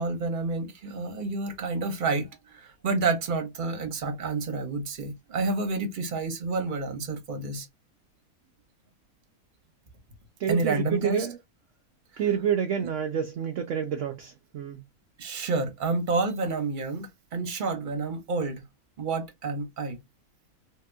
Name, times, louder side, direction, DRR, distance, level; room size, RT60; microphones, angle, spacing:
voice 1, 0.0-7.7 10.5-11.3 15.2-18.6 19.0-20.0, right 3 dB, 40° right, 1.0 m, -29 dB
voice 2, 10.4-11.4 12.2-14.8, right 8 dB, 70° right, 0.8 m, -28 dB
3.6 x 2.8 x 2.2 m
omnidirectional pair, 1.5 m